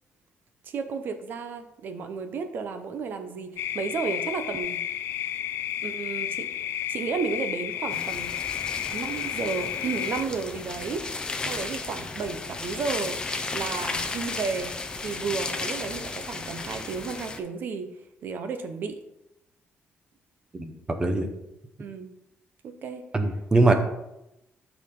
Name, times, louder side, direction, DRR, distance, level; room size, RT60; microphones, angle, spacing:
voice 1, 0.6-4.8 5.8-8.3 8.9-11.1 11.4-13.2 13.5-14.7 15.0-17.9 18.2-19.0 21.8-22.1 22.6-23.0, right 5 dB, 50° right, 8 dB, 0.9 m, -32 dB
sound 1, 3.6-10.3, left 11 dB, 70° left, 0.3 m, -32 dB
sound 2, 7.9-17.4, left 3 dB, 20° left, 0.7 m, -34 dB
voice 2, 20.6-21.3 23.1-23.7, right 2 dB, 20° right, 6 dB, 0.9 m, -22 dB
13.0 x 4.8 x 3.8 m, 0.89 s
cardioid pair, 170°, 4 cm